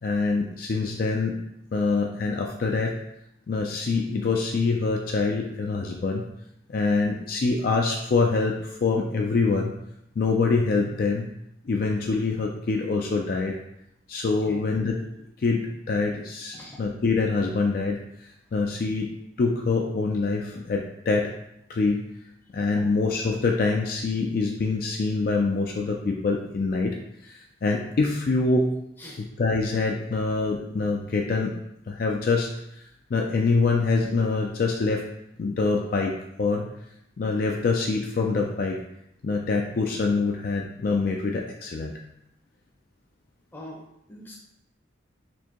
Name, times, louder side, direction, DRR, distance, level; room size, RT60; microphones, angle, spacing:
voice 1, 0.0-1.4 1.7-2.9 3.5-6.2 6.7-9.7 10.2-11.3 11.6-13.6 14.1-15.0 15.4-19.1 19.4-21.3 21.7-22.0 22.5-27.0 27.2-28.7 29.4-31.6 31.9-32.5 33.1-35.0 35.4-36.1 36.4-36.6 37.2-38.8 39.2-41.9, left 3 dB, 50° left, 1 dB, 0.3 m, -25 dB
voice 2, 43.5-44.4, left 1 dB, 10° left, -3 dB, 0.6 m, -42 dB
4.2 x 2.7 x 2.9 m, 0.78 s
head